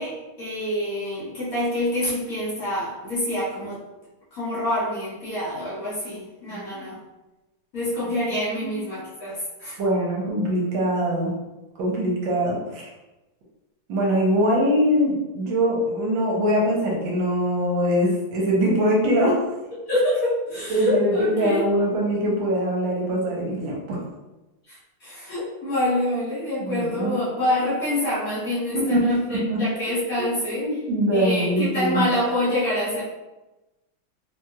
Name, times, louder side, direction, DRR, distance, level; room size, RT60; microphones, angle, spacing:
voice 1, 0.0-3.8 4.3-7.0 7.7-9.8 19.9-21.6 24.7-30.7 31.1-33.0, left 1 dB, 50° left, -9 dB, 1.3 m, -26 dB
voice 2, 6.5-6.8 8.3-8.8 9.8-11.3 11.8-12.9 13.9-19.4 20.7-24.0 26.6-27.1 28.7-28.8 29.1-29.6 30.6-32.0, equal, 75° right, -2 dB, 1.4 m, -23 dB
3.1 x 2.8 x 2.3 m, 1.0 s
omnidirectional pair, 2.2 m